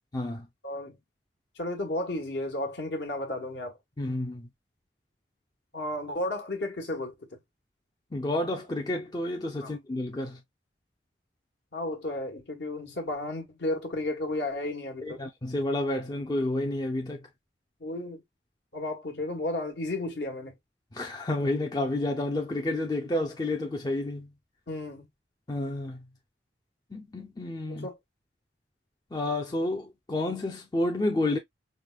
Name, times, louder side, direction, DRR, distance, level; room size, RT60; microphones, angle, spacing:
voice 1, 0.1-0.5 4.0-4.5 8.1-10.4 15.0-17.3 20.9-24.3 25.5-26.1 26.9-27.9 29.1-31.4, left 1 dB, 20° left, 0.5 m, -30 dB
voice 2, 0.6-1.0 1.6-3.8 5.7-7.4 9.6-9.7 11.7-15.2 17.8-18.2 18.7-20.5 24.7-25.1 27.7-28.0, left 1 dB, 65° left, 1.3 m, -33 dB
5.0 x 2.2 x 2.3 m
head